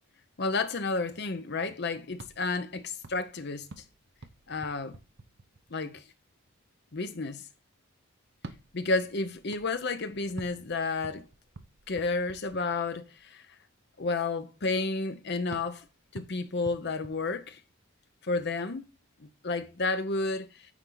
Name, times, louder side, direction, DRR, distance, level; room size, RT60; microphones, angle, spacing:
voice 1, 0.4-3.7 4.5-5.0 5.7-6.0 6.9-7.4 8.7-11.2 11.9-13.4 14.0-15.8 16.1-17.6 18.2-18.8 19.2-20.7, left 3 dB, 50° left, 0.7 m, -31 dB
sound 1, 2.1-5.9 8.3-13.2 15.5-17.9, right 2 dB, 55° right, 0.8 m, -49 dB
9.8 x 4.4 x 3.9 m
head